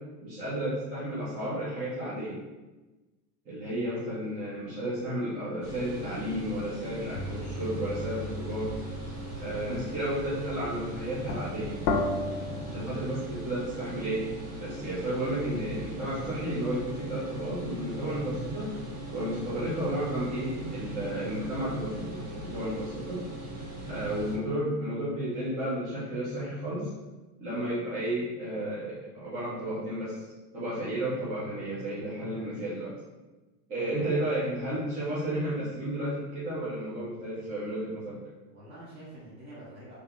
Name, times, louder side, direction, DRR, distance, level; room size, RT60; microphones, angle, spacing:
voice 1, 0.2-2.4 3.5-8.7 9.4-11.8 12.7-14.2 14.6-18.7 19.1-23.2 23.9-26.9 27.4-30.2 30.5-32.9 33.7-38.2, right 1 dB, 15° right, -10 dB, 0.3 m, -32 dB
sound 1, 5.6-24.4, right 1 dB, 75° right, 1.5 m, -39 dB
sound 2, 7.1-13.1, left 2 dB, 65° left, 0.6 m, -35 dB
voice 2, 33.8-34.2 38.5-40.0, right 1 dB, 35° right, -7 dB, 1.5 m, -48 dB
3.2 x 2.8 x 2.3 m, 1.1 s
supercardioid pair, 135°, 48 cm